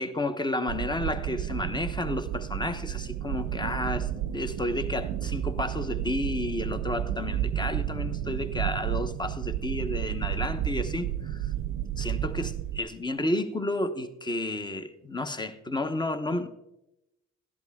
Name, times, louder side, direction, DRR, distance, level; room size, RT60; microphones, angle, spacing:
voice 1, 0.0-11.5 12.0-16.5, left 2 dB, 15° left, 0.9 m, -31 dB
sound 1, 0.7-12.8, right 11 dB, 85° right, 0.6 m, -32 dB
13.0 x 10.5 x 3.6 m
cardioid pair, 90°, 30 cm